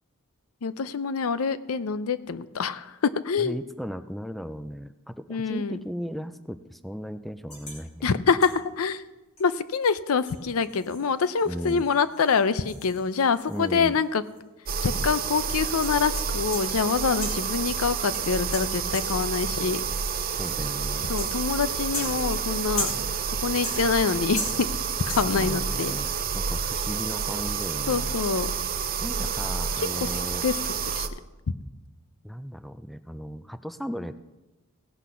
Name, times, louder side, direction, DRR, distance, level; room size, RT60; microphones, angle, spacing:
voice 1, 0.6-3.6 5.3-5.8 8.0-9.0 9.4-14.2 14.8-19.8 21.1-22.9 23.4-24.7 25.1-25.9 27.9-28.5 30.0-30.1 30.4-31.1, left 5 dB, 75° left, 14 dB, 0.5 m, -25 dB
voice 2, 3.4-8.2 11.5-11.9 13.5-14.0 20.4-21.1 25.3-28.2 29.0-30.4 32.2-34.2, equal, ahead, 12 dB, 0.3 m, -36 dB
sound 1, 7.5-7.9 8.4-8.7 9.4-9.5 9.8-9.9 10.3-14.0 14.3-14.4 15.1-16.8 17.2-17.6 18.1-19.4 20.1-20.5 21.2-21.6 21.9-23.3 23.6-24.1 24.4-24.8 25.1-25.5, left 1 dB, 30° left, 3.0 m, -38 dB
sound 2, 14.7-31.1, right 6 dB, 45° right, 0.6 m, -29 dB
16.5 x 6.2 x 5.5 m, 1.1 s
head